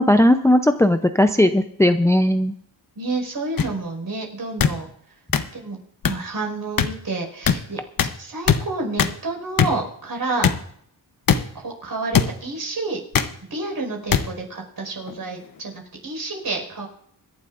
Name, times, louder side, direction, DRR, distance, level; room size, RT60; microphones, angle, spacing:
voice 1, 0.0-2.5, left 1 dB, 5° left, 8 dB, 0.6 m, -17 dB
voice 2, 3.0-4.9 5.5-5.8 6.0-10.5 11.5-13.0 13.5-16.9, right 3 dB, 55° right, 2 dB, 5.2 m, -29 dB
sound 1, 3.6-3.7 4.6-4.7 5.3-5.4 6.0-6.1 6.8-6.9 7.5-7.6 8.0-8.1 8.5-8.6 9.0-9.1 9.6-9.7 10.4-10.6 11.3-11.4 12.1-12.3 13.1-13.3 14.1-14.2 15.1-15.2, left 7 dB, 50° left, 1.0 m, -18 dB
26.0 x 11.5 x 2.6 m, 0.66 s
cardioid pair, 90°, 43 cm